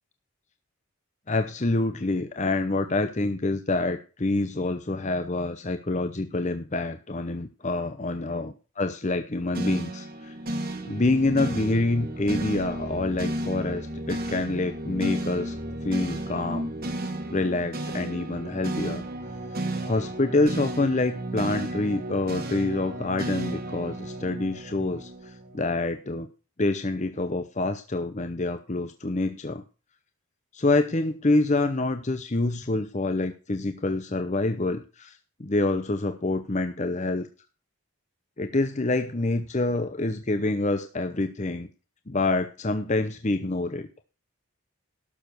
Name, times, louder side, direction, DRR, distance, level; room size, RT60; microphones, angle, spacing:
voice 1, 1.3-10.3 10.8-15.5 15.8-16.7 17.3-19.0 19.5-26.3 26.6-29.6 30.5-37.3 38.4-41.7 42.1-43.9, left 2 dB, 30° left, 9 dB, 0.8 m, -27 dB
sound 1, 9.5-25.8, right 1 dB, 45° right, 1.8 m, -33 dB
12.0 x 6.9 x 6.1 m, 0.34 s
head